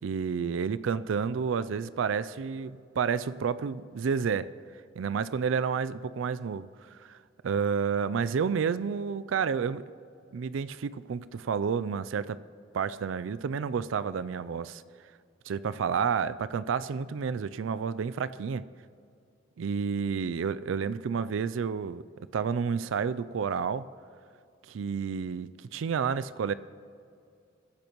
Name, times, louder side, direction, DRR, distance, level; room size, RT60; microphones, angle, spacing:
voice 1, 0.0-4.5 5.0-7.2 7.4-9.8 10.3-12.4 12.7-14.8 15.5-18.6 19.6-23.9 24.7-26.5, right 6 dB, 80° right, 16 dB, 0.4 m, -30 dB
21.5 x 10.5 x 3.0 m, 2.4 s
head